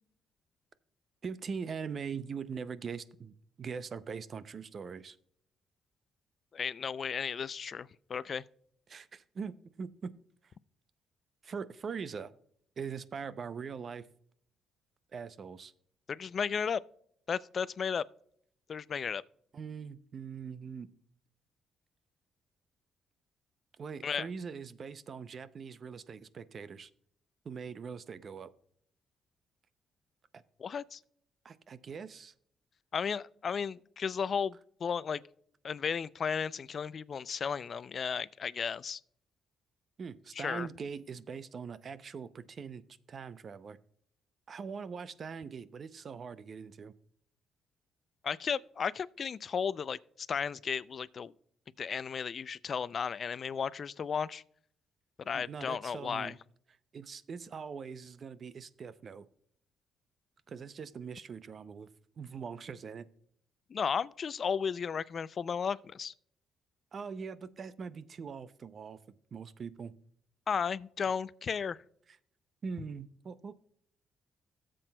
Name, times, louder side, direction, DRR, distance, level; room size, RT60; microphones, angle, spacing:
voice 1, 1.2-5.2 8.9-10.1 11.4-12.3 12.8-14.1 15.1-15.7 19.5-20.9 23.8-26.9 27.4-28.5 31.4-32.3 40.0-42.8 43.1-43.8 44.5-46.9 55.3-56.3 56.9-59.3 60.5-61.9 62.2-63.1 66.9-69.0 69.3-69.9 72.6-73.5, right 6 dB, 45° right, 0.5 m, -42 dB
voice 2, 6.5-8.4 16.1-16.8 17.3-18.0 18.7-19.2 24.0-24.3 30.6-31.0 32.9-35.2 35.6-39.0 40.4-40.7 48.2-51.3 51.8-54.4 55.3-56.3 63.7-66.1 70.5-71.8, left 6 dB, 50° left, 0.3 m, -34 dB
14.5 x 7.6 x 2.2 m
cardioid pair, 90°, 0 cm